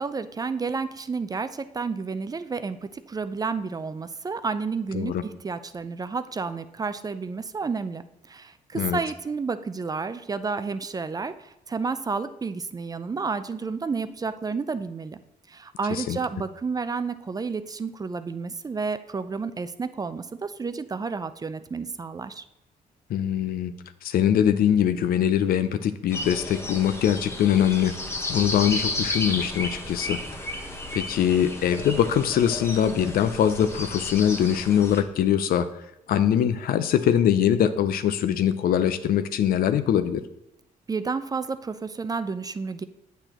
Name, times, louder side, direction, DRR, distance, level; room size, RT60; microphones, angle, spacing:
voice 1, 0.0-15.2 15.5-22.4 40.9-42.8, right 4 dB, 25° right, 12 dB, 0.4 m, -31 dB
voice 2, 23.1-23.7 24.0-28.0 28.3-30.2 30.9-35.7 36.1-40.2, left 9 dB, 75° left, 12 dB, 0.5 m, -22 dB
birds-in-spring, 26.1-35.0, left 2 dB, 15° left, 1.0 m, -33 dB
8.0 x 6.8 x 3.0 m, 0.86 s
cardioid pair, 90°, 15 cm